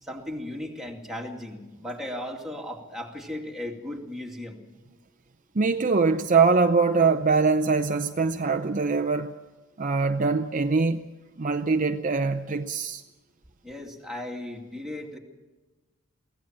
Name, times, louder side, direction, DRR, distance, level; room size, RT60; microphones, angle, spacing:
voice 1, 0.0-4.6 13.6-15.2, left 1 dB, ahead, 2.4 m, -36 dB
voice 2, 5.5-9.3 9.8-11.1 11.4-13.0, right 4 dB, 35° right, 0.6 m, -23 dB
23.0 x 16.0 x 7.5 m
head